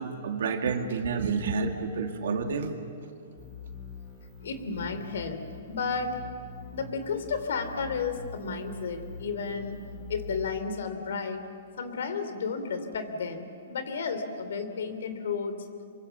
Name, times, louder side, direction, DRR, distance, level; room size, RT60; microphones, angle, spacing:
voice 1, 0.0-2.7, right 5 dB, 75° right, 4 dB, 2.4 m, -29 dB
sound 1, 3.4-10.6, left 2 dB, 5° left, 5.7 m, -44 dB
voice 2, 4.4-5.4 5.7-6.2 6.7-9.8 10.1-11.5 11.8-15.6, left 5 dB, 75° left, 9 dB, 3.0 m, -32 dB
26.5 x 23.5 x 7.3 m, 2.4 s
hypercardioid pair, 145°, 0 cm